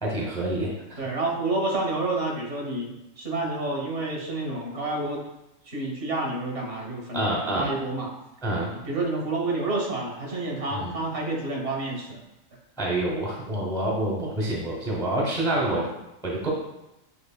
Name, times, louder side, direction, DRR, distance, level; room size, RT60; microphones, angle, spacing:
voice 1, 0.0-1.0 7.1-7.7 8.4-8.7 10.7-11.0 12.8-15.9 16.2-16.5, right 1 dB, 5° left, -3 dB, 0.6 m, -27 dB
voice 2, 1.0-5.2 5.7-8.1 8.7-12.2 15.5-15.9, right 2 dB, 65° right, 0 dB, 1.4 m, -29 dB
6.5 x 3.1 x 2.2 m, 0.91 s
omnidirectional pair, 1.4 m